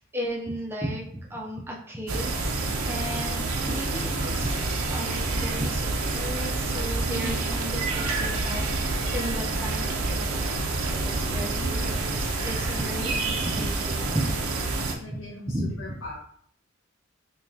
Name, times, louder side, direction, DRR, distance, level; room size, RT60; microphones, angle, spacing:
voice 1, 0.0-14.3 15.1-15.2 15.5-15.7, equal, 10° right, -1 dB, 0.4 m, -35 dB
sound 1, 2.1-15.0, right 3 dB, 80° right, 0.6 m, -28 dB
voice 2, 4.2-4.6 7.1-7.6 11.3-11.9 14.8-16.1, equal, 75° left, -4 dB, 1.4 m, -40 dB
4.9 x 2.2 x 2.7 m, 0.62 s
head